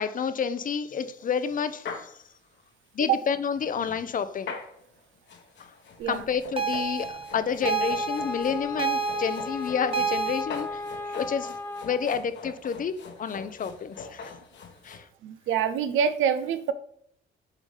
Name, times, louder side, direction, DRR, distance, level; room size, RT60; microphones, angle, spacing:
voice 1, 0.0-2.1 2.9-4.5 5.6-5.7 6.1-10.8 11.1-11.6 11.8-14.3 14.8-15.0, left 6 dB, 45° left, 12 dB, 0.6 m, -29 dB
sound 1, 0.9-1.0 1.5-1.6 1.8-2.1 3.3-15.0, left 5 dB, 65° left, 1.2 m, -43 dB
sound 2, 6.6-10.4, right 6 dB, 30° right, 0.7 m, -29 dB
Wind instrument woodwind instrument, 7.6-12.2, left 4 dB, 10° left, 0.9 m, -36 dB
voice 2, 15.2-16.7, right 8 dB, 85° right, 12 dB, 0.6 m, -25 dB
7.3 x 4.0 x 3.3 m, 0.66 s
cardioid pair, 90°, 20 cm